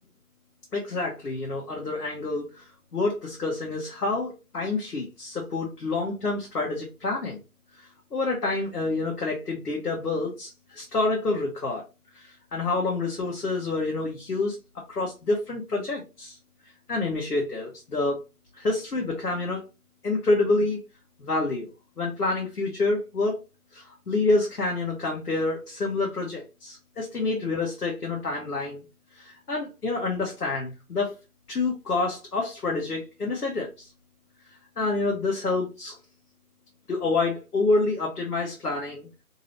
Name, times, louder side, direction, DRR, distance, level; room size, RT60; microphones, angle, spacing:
voice 1, 0.7-7.4 7.7-11.8 12.1-14.6 14.9-16.4 16.9-18.2 18.6-19.6 20.0-20.8 21.2-21.7 22.0-23.4 23.7-28.8 29.1-31.1 31.5-33.9 34.8-36.0 36.9-39.1, left 3 dB, 80° left, -2 dB, 1.1 m, -28 dB
2.9 x 2.8 x 2.9 m, 0.28 s
figure-of-eight pair, 165°, 46 cm